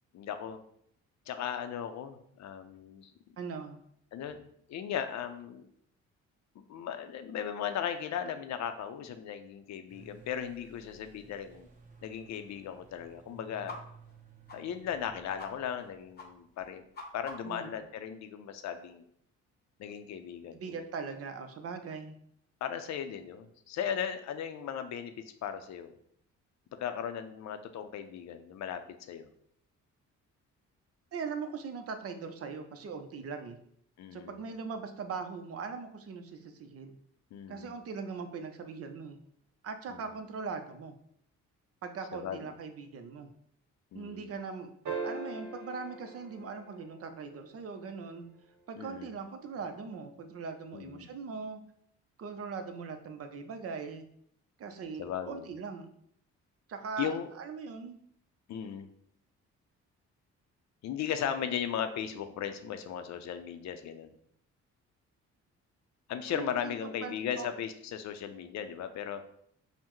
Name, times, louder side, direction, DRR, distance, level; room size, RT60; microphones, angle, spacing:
voice 1, 0.1-0.6 1.3-3.1 4.1-4.4 4.7-5.7 6.6-11.7 12.0-13.8 14.5-16.8 17.1-19.0 19.8-20.8 22.6-25.1 25.4-25.9 26.7-28.8 29.1-29.3 34.0-34.4 37.3-37.8 39.9-40.1 42.1-42.4 43.9-44.3 48.8-49.1 50.7-51.1 55.0-55.5 57.0-57.3 58.5-58.9 60.8-64.1 66.1-69.2, left 8 dB, 65° left, 8 dB, 0.5 m, -37 dB
voice 2, 3.4-3.8 17.4-17.7 20.5-22.1 31.1-33.6 34.1-37.0 37.5-39.2 39.6-40.9 41.8-43.3 43.9-44.7 45.0-48.2 48.7-51.6 52.2-54.1 54.6-55.9 56.7-58.0 66.3-66.7 67.0-67.5, right 5 dB, 50° right, 7 dB, 0.6 m, -40 dB
sound 1, 9.9-17.4, right 4 dB, 25° right, 1.0 m, -57 dB
sound 2, 13.7-13.8 14.1-14.2 14.5-14.6 14.9-15.1 15.4-15.5 15.8-15.9 16.2-16.3 16.6-17.6, left 3 dB, 35° left, 0.8 m, -45 dB
sound 3, 44.8-47.4 49.6-49.7, right 4 dB, 70° right, 1.0 m, -40 dB
5.5 x 2.1 x 3.0 m, 0.69 s
cardioid pair, 90°, 30 cm